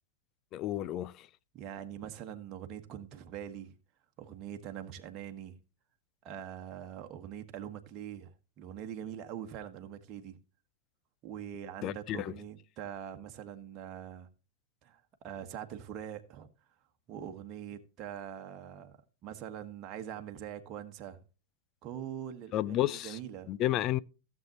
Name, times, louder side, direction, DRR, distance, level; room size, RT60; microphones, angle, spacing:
voice 1, 0.5-1.3 11.8-12.3 22.5-23.2 23.5-24.0, left 13 dB, 35° left, 0.5 m, -31 dB
voice 2, 1.5-3.7 4.2-5.5 6.2-10.4 11.2-14.3 14.8-16.5 17.1-19.0 19.2-21.2 21.8-23.5, right 9 dB, 35° right, 1.4 m, -43 dB
16.0 x 7.5 x 2.9 m
figure-of-eight pair, 90°, 0 cm